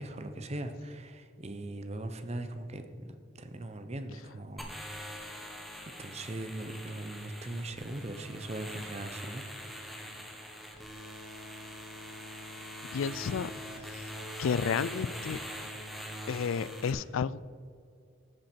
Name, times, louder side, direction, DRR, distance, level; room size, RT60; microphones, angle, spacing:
voice 1, 0.0-4.8 5.1-5.5 6.0-9.4, right 1 dB, 35° right, 8 dB, 0.8 m, -40 dB
sound 1, 4.6-16.9, equal, ahead, 1.5 m, -43 dB
voice 2, 12.9-13.5 13.8-14.1 14.4-15.4 16.3-17.5, left 6 dB, 90° left, 19 dB, 0.4 m, -31 dB
14.0 x 7.7 x 4.5 m, 2.3 s
head